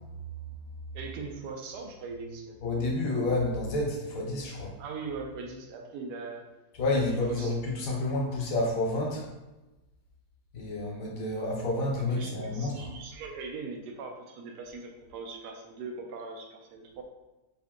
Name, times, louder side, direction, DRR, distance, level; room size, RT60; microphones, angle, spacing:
voice 1, 0.9-2.6 4.8-6.4 6.9-7.0 7.3-7.5 12.1-17.0, right 4 dB, 85° right, 1 dB, 1.2 m, -40 dB
voice 2, 2.6-4.7 6.8-9.3 10.5-12.9, left 2 dB, 60° left, 0 dB, 1.2 m, -29 dB
4.7 x 2.6 x 3.7 m, 1.1 s
omnidirectional pair, 1.8 m